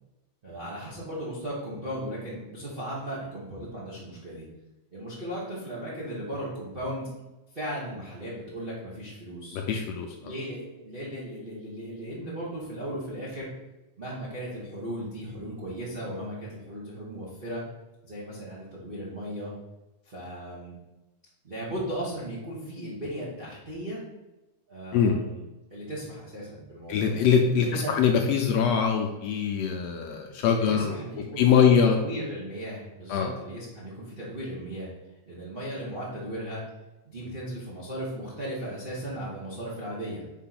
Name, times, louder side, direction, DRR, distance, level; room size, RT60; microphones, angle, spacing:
voice 1, 0.4-4.5 4.9-7.1 7.5-9.6 10.2-13.5 14.0-17.6 18.0-19.5 20.0-20.7 21.4-24.0 24.7-27.2 27.5-27.9 30.5-34.9 35.3-36.6 37.0-40.2, right 1 dB, 40° right, -7 dB, 0.7 m, -36 dB
voice 2, 9.5-10.3 24.9-25.1 26.9-31.0 31.4-32.0 33.1-33.3, left 7 dB, 75° left, 3 dB, 1.6 m, -23 dB
4.7 x 4.5 x 5.8 m, 1.1 s
omnidirectional pair, 3.4 m